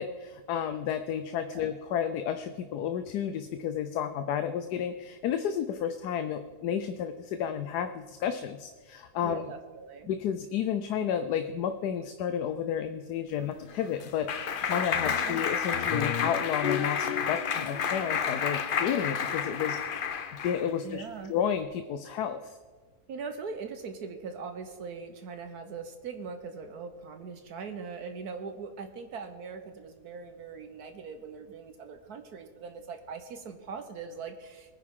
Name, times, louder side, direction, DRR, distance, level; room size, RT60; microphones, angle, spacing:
voice 1, 0.0-9.5 10.1-20.0 20.4-21.0 21.3-22.6, left 8 dB, 85° left, 9 dB, 1.2 m, -31 dB
voice 2, 9.2-10.1 15.0-15.4 20.8-21.3 23.1-34.7, right 5 dB, 75° right, 6 dB, 1.5 m, -41 dB
Clapping, 13.4-20.7, left 7 dB, 55° left, 0.6 m, -30 dB
22.5 x 9.7 x 3.7 m, 1.5 s
omnidirectional pair, 1.7 m